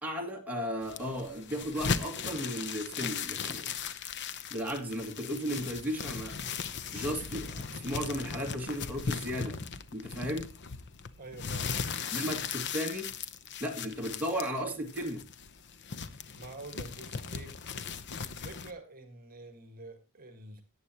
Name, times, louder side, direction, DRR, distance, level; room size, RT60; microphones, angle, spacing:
voice 1, 0.0-3.7 4.5-6.4 6.9-9.6 9.9-10.5 12.1-13.2 13.6-15.2, equal, 10° right, 2.1 m, -35 dB
sound 1, 0.8-18.7, left 6 dB, 55° left, 0.8 m, -38 dB
voice 2, 11.2-11.8 16.3-17.6 18.2-20.6, right 2 dB, 40° right, 1.7 m, -47 dB
18.0 x 8.6 x 2.9 m
head